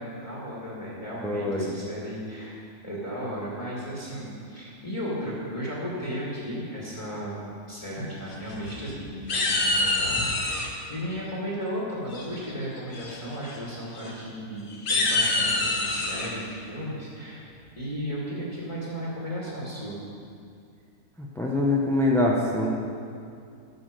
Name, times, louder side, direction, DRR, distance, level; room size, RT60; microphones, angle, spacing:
voice 1, 0.0-20.0, equal, 20° left, -7 dB, 1.7 m, -35 dB
voice 2, 1.2-1.7 21.2-22.7, left 2 dB, 5° left, -2 dB, 0.3 m, -24 dB
sound 1, 8.3-8.9 9.3-10.7 12.1-12.5 12.9-13.2 13.4-13.6 14.0-14.1 14.7-16.3, left 2 dB, 40° left, 1.0 m, -26 dB
9.4 x 6.2 x 6.6 m, 2.4 s
omnidirectional pair, 1.8 m